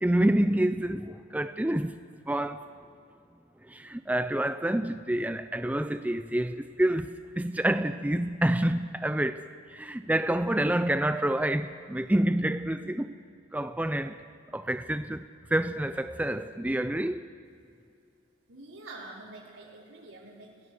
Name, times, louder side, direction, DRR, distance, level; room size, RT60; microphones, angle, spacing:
voice 1, 0.0-2.0 2.3-2.7 3.6-9.4 9.7-13.1 13.5-14.2 14.5-15.2 15.5-17.3, right 1 dB, 10° right, 0.5 m, -28 dB
voice 2, 18.5-20.7, right 2 dB, 75° right, 5.3 m, -46 dB
29.5 x 18.5 x 6.6 m
head